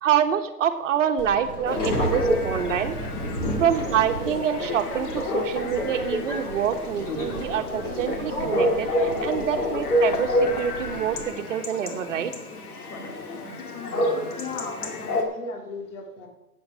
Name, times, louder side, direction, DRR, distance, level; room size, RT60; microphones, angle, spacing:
voice 1, 0.0-2.9 3.6-12.3, right 9 dB, 50° right, 7 dB, 1.3 m, -26 dB
Subway metro underground, 1.2-11.2, equal, 10° left, 0.8 m, -32 dB
Chatter / Bark / Livestock farm animals working animals, 1.6-15.2, left 1 dB, 70° left, 2.5 m, -29 dB
voice 2, 14.1-16.3, left 4 dB, 50° left, 3 dB, 2.5 m, -37 dB
12.0 x 8.8 x 5.6 m, 0.99 s
hypercardioid pair, 165°, 47 cm